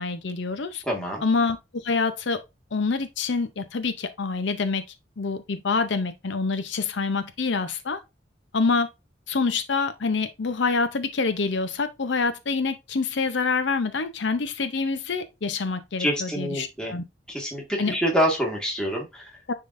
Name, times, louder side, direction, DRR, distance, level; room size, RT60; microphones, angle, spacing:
voice 1, 0.0-0.8 1.2-2.4 2.7-4.8 5.2-8.0 8.5-8.9 9.3-17.0 17.8-18.0 19.5-19.6, left 4 dB, 75° left, 0.7 m, -26 dB
voice 2, 0.8-1.2 16.0-17.0 17.3-19.3, equal, 5° left, 1.8 m, -26 dB
9.9 x 3.7 x 2.6 m
head